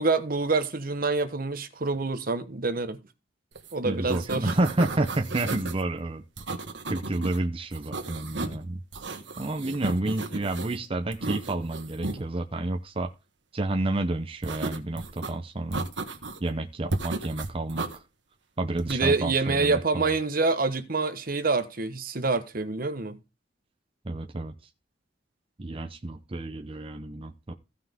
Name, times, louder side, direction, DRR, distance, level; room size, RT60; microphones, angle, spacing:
voice 1, 0.0-3.0 3.7-4.5 18.9-23.2, right 3 dB, 50° right, 1.2 m, -26 dB
sound 1, 3.6-3.7 4.0-5.8 6.4-7.4 7.7-8.6 8.9-10.8 11.1-12.2 14.4-15.3 15.7-16.5 16.9-18.0 18.8-19.2, right 3 dB, 75° right, 1.5 m, -34 dB
voice 2, 3.8-6.2 6.9-8.8 9.4-13.1 13.5-15.9 16.4-18.0 18.6-20.1 24.0-24.5 25.6-27.5, right 2 dB, 30° right, 0.7 m, -30 dB
16.0 x 5.8 x 3.6 m
head